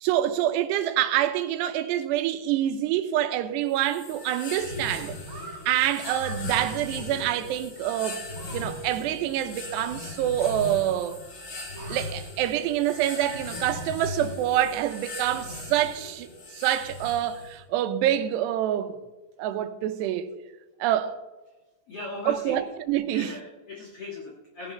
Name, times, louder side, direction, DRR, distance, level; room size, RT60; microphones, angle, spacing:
voice 1, 0.0-5.2 5.7-8.3 8.5-11.2 11.9-19.0 19.4-20.3 20.8-21.2 22.3-23.4, right 12 dB, 80° right, 2.9 m, -26 dB
sound 1, 3.7-17.6, left 3 dB, 75° left, 0.8 m, -38 dB
sound 2, 4.9-5.6 6.0-6.4 7.0-7.6 8.3-8.6 8.9-9.0 9.2-9.4 9.7-9.8 11.5-12.3, right 4 dB, 55° right, 2.1 m, -45 dB
voice 2, 21.9-22.7 23.1-24.7, left 3 dB, 55° left, 1.7 m, -39 dB
16.5 x 10.0 x 4.5 m
omnidirectional pair, 5.0 m